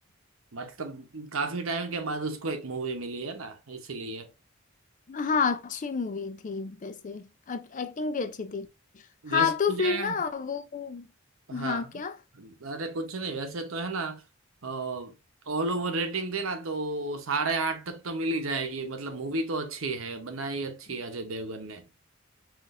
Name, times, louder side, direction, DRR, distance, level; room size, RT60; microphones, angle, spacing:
voice 1, 0.5-4.3 9.2-10.1 11.5-11.9 12.3-14.2 14.6-15.1 15.5-21.8, right 3 dB, 85° right, 0.9 m, -32 dB
voice 2, 5.1-8.7 9.3-11.1 11.5-12.2, left 5 dB, 40° left, 0.4 m, -29 dB
5.8 x 2.5 x 2.5 m
head